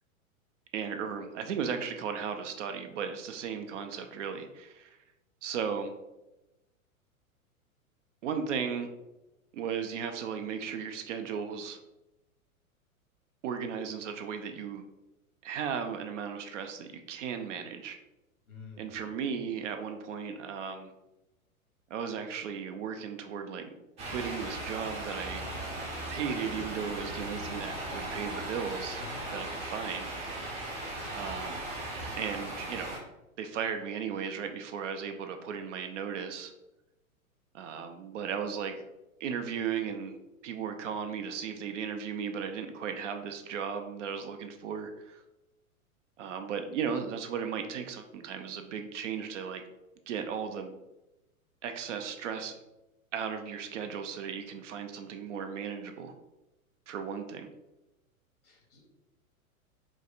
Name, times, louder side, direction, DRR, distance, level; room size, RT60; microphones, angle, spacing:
voice 1, 0.7-4.9 5.4-5.9 8.2-8.9 9.5-11.8 13.4-14.8 15.4-18.0 18.8-20.9 21.9-23.7 24.1-25.5 26.1-29.0 29.3-30.4 31.1-31.6 32.1-33.0 33.4-36.5 37.5-38.8 39.2-40.2 40.4-45.2 46.2-49.6 50.1-50.7 51.6-52.5 53.1-56.1 56.9-57.5, right 7 dB, 60° right, 7 dB, 0.5 m, -36 dB
voice 2, 18.5-19.0 28.9-29.2 58.4-58.9, left 4 dB, 80° left, 0 dB, 1.2 m, -49 dB
sound 1, 24.0-33.0, right 1 dB, 15° right, 0.6 m, -38 dB
4.7 x 2.1 x 2.4 m, 0.97 s
figure-of-eight pair, 105°, 43 cm